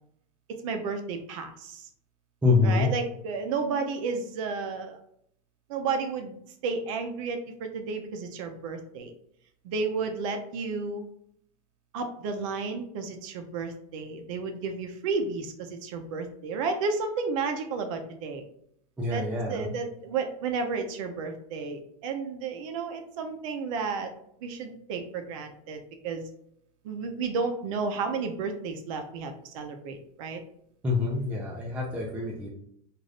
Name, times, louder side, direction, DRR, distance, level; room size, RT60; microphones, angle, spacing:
voice 1, 0.5-1.9 2.6-5.0 5.7-9.1 9.6-11.0 11.9-18.4 19.1-24.1 24.4-26.2 26.8-30.4, right 4 dB, 60° right, 6 dB, 0.5 m, -32 dB
voice 2, 2.4-2.9 19.0-19.7 30.8-32.5, left 4 dB, 5° right, -3 dB, 0.4 m, -26 dB
2.5 x 2.4 x 3.3 m, 0.70 s
supercardioid pair, 140°, 19 cm